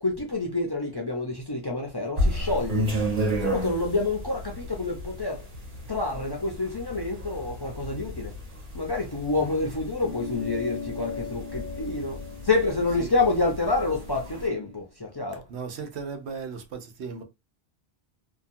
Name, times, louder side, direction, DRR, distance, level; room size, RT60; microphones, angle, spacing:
voice 1, 0.0-2.8 3.4-5.4 5.9-8.3 8.7-12.2 12.5-14.8 15.2-15.4, left 3 dB, 30° left, 0.5 m, -27 dB
sound 1, 2.2-14.5, equal, 55° right, 1.2 m, -33 dB
sound 2, 10.0-14.8, left 6 dB, 60° left, 0.8 m, -39 dB
voice 2, 15.5-17.2, right 5 dB, 90° right, 1.0 m, -36 dB
2.9 x 2.2 x 2.6 m
omnidirectional pair, 1.1 m